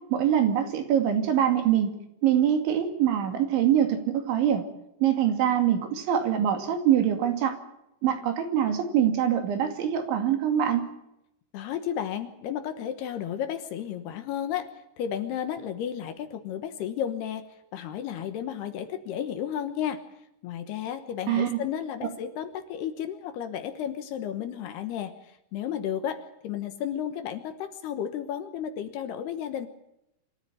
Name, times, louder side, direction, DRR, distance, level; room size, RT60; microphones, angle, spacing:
voice 1, 0.1-1.9 2.2-4.6 5.0-7.6 8.0-10.9 21.3-21.6, right 10 dB, 75° right, 6 dB, 4.7 m, -24 dB
voice 2, 11.5-14.7 15.0-17.5 17.7-20.0 20.4-29.7, left 9 dB, 70° left, 9 dB, 2.9 m, -33 dB
26.0 x 14.0 x 9.1 m, 0.83 s
omnidirectional pair, 5.4 m